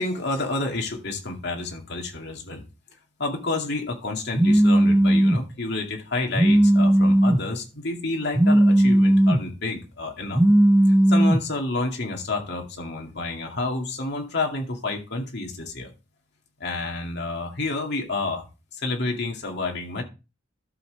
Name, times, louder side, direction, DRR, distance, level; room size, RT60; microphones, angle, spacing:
voice 1, 0.0-2.6 3.2-10.4 10.9-15.9 16.6-18.5 18.7-20.0, left 2 dB, 55° left, 2 dB, 2.3 m, -29 dB
Telephone, 4.3-5.4 6.3-7.4 8.3-9.4 10.3-11.4, right 1 dB, 10° right, 0.9 m, -17 dB
12.5 x 7.3 x 3.4 m, 0.29 s
head